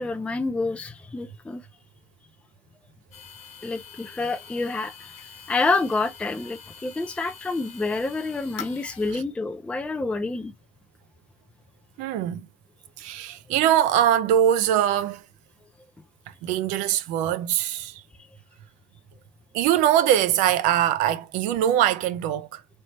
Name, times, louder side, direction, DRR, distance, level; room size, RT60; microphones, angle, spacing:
voice 1, 0.0-1.6 3.6-5.1 5.5-10.5, left 3 dB, 10° left, 0.4 m, -28 dB
sound 1, 3.1-9.2, left 7 dB, 55° left, 0.9 m, -44 dB
voice 2, 12.0-12.5 13.0-15.2 16.4-18.0 19.5-22.6, right 11 dB, 65° right, 0.6 m, -22 dB
3.2 x 3.0 x 4.1 m
supercardioid pair, 120°, 14 cm